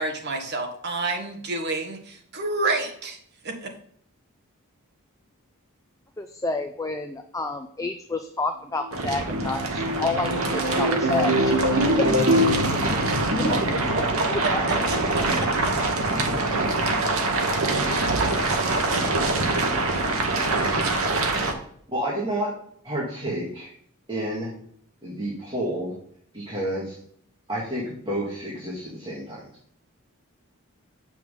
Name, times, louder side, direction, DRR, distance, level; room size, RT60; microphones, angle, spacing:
voice 1, 0.0-3.2 3.4-3.7 13.5-14.0 14.9-15.7, right 2 dB, 50° right, 3 dB, 1.5 m, -29 dB
voice 2, 6.2-11.8 13.4-13.6 14.3-14.6, left 3 dB, 15° left, 6 dB, 0.4 m, -30 dB
sound 1, 8.8-14.4, equal, 90° right, 1.7 m, -25 dB
sound 2, 8.9-21.5, right 2 dB, 65° right, 1.3 m, -24 dB
voice 3, 21.9-22.5 22.8-23.7 24.1-24.5 25.0-25.9 26.3-26.9 27.5-29.4, right 1 dB, 25° right, -6 dB, 2.1 m, -29 dB
7.7 x 6.0 x 3.7 m, 0.63 s
head